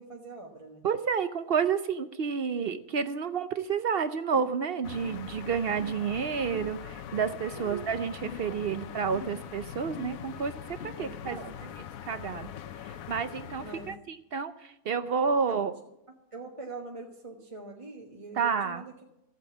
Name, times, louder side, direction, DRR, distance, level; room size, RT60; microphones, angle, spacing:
voice 1, 0.0-0.9 7.5-7.8 11.0-11.8 13.5-14.0 15.4-15.6 16.3-18.9, right 3 dB, 25° right, -1 dB, 1.2 m, -43 dB
voice 2, 0.8-11.4 12.1-12.5 12.8-15.7 18.4-18.8, right 6 dB, 55° right, 11 dB, 0.6 m, -30 dB
sound 1, 4.3-4.6 5.0-5.4 5.8-6.0 6.5-6.8 8.2-8.6 9.1-9.5 9.9-10.3 10.8-11.1, left 6 dB, 45° left, 1.3 m, -45 dB
sound 2, 4.8-14.0, left 9 dB, 70° left, 1.1 m, -42 dB
15.0 x 8.4 x 7.2 m, 0.87 s
omnidirectional pair, 1.6 m